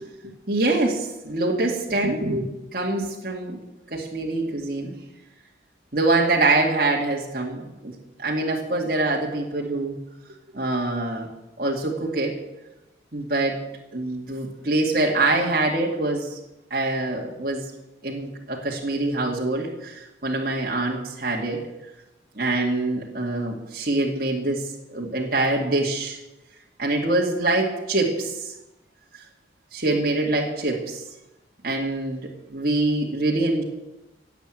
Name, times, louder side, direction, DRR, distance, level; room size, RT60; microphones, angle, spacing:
voice 1, 0.0-3.6 3.9-4.9 5.9-10.0 10.5-11.3 11.6-12.3 13.1-13.6 13.9-16.4 16.7-17.7 18.0-21.6 22.4-26.2 26.8-28.5 29.1-29.2 29.7-31.0 31.6-33.6, right 2 dB, 50° right, -3 dB, 2.3 m, -25 dB
17.0 x 8.3 x 9.2 m, 0.99 s
head